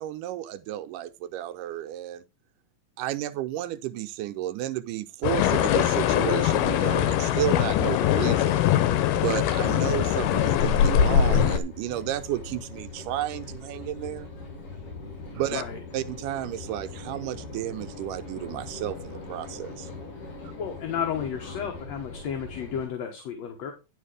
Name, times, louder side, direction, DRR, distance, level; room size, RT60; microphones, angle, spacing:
voice 1, 0.0-2.2 3.0-8.6 9.1-14.3 15.3-15.6 15.9-19.9, right 13 dB, 85° right, 2.2 m, -32 dB
sound 1, 5.2-11.6, left 10 dB, 90° left, 2.4 m, -22 dB
sound 2, 10.5-22.9, left 3 dB, 45° left, 3.3 m, -41 dB
voice 2, 20.6-23.7, left 8 dB, 60° left, 2.3 m, -32 dB
10.5 x 5.1 x 4.9 m
omnidirectional pair, 3.7 m